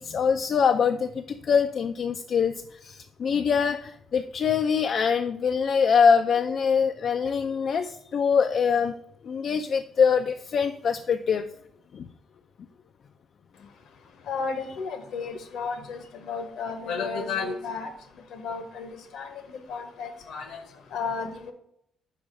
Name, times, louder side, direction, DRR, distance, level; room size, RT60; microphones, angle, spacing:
voice 1, 0.0-8.9 9.2-11.5 11.9-12.1, left 6 dB, 55° left, 7 dB, 0.3 m, -24 dB
voice 2, 14.2-21.5, left 5 dB, 75° left, 8 dB, 1.0 m, -33 dB
5.2 x 4.9 x 5.1 m, 0.72 s
cardioid pair, 90°, 0 cm